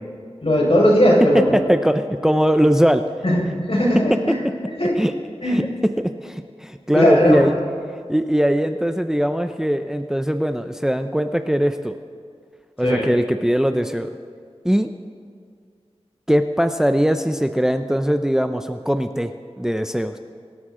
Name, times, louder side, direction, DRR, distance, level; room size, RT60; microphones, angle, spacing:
voice 1, 0.4-1.4 3.2-3.4 3.7-4.4 4.8-4.9 5.4-5.6 6.9-7.4 12.8-13.0, equal, 60° left, -4 dB, 5.1 m, -17 dB
voice 2, 1.3-3.0 5.0-5.1 5.4-5.7 6.2-7.5 8.1-12.0 12.8-14.1 14.6-14.9 16.3-19.3 19.6-20.2, equal, 5° right, 8 dB, 0.5 m, -20 dB
23.5 x 12.5 x 3.8 m, 2.2 s
wide cardioid pair, 65°, 11 cm